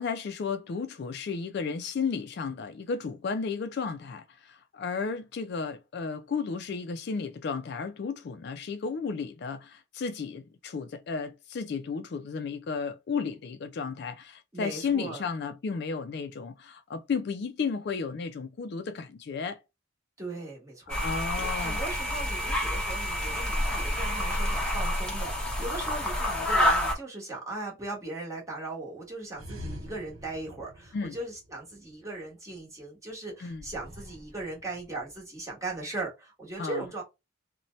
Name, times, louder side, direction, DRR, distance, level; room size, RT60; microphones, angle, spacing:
voice 1, 0.0-19.6 20.9-21.8 30.9-31.2 33.4-33.6 36.6-36.8, left 5 dB, 50° left, 0.3 m, -33 dB
voice 2, 14.5-15.2 20.2-21.0 21.4-37.0, right 2 dB, 15° right, 1.0 m, -38 dB
sound 1, 20.9-26.9, equal, 5° left, 0.7 m, -28 dB
sound 2, 29.3-32.0 33.5-35.2, equal, 80° right, 0.7 m, -45 dB
2.7 x 2.1 x 3.0 m
head